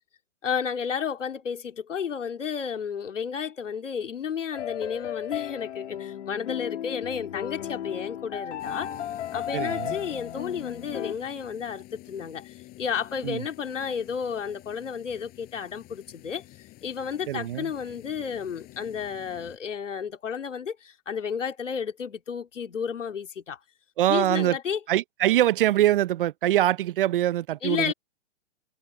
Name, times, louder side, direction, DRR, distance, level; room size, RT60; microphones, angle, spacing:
voice 1, 0.4-8.9 9.3-16.4 16.8-23.6 24.1-24.8 27.6-27.9, left 7 dB, 90° left, 2.9 m, -32 dB
sound 1, 4.5-11.1, left 10 dB, 70° left, 2.4 m, -34 dB
sound 2, 8.6-19.6, left 18 dB, 25° left, 4.5 m, -48 dB
voice 2, 9.5-9.9 13.2-13.4 17.3-17.7 24.0-24.6 24.9-27.9, right 13 dB, 50° right, 0.6 m, -23 dB
hypercardioid pair, 145°, 36 cm